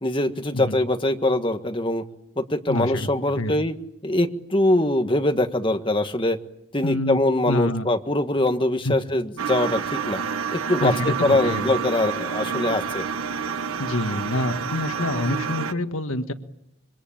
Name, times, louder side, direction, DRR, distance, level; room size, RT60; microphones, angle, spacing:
voice 1, 0.0-2.0 2.4-3.7 4.0-6.4 6.7-10.2 10.5-13.0, left 1 dB, 25° left, 7 dB, 1.6 m, -23 dB
voice 2, 2.7-3.1 3.3-3.5 6.8-7.2 7.4-7.9 8.8-8.9 10.8-11.6 13.8-16.3, left 1 dB, 80° left, 8 dB, 1.6 m, -26 dB
sound 1, 9.4-15.7, right 6 dB, 80° right, 1.3 m, -28 dB
26.5 x 23.5 x 8.8 m, 0.80 s
head